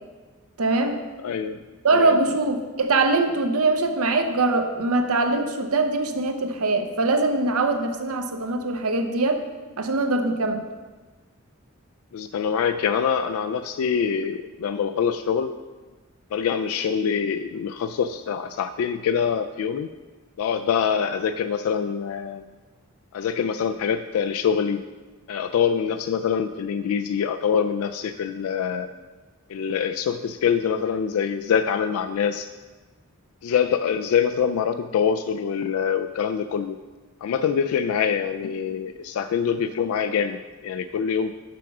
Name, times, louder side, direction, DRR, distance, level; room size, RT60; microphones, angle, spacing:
voice 1, 0.6-1.0 1.8-9.4 9.8-10.6, right 3 dB, 85° right, 7 dB, 0.8 m, -22 dB
voice 2, 1.2-1.6 1.9-2.2 12.1-15.5 16.3-19.9 20.4-22.5 23.1-24.8 25.3-28.9 29.5-32.5 33.4-36.8 37.2-41.3, left 7 dB, 75° left, 9 dB, 0.3 m, -25 dB
6.0 x 6.0 x 5.9 m, 1.3 s
head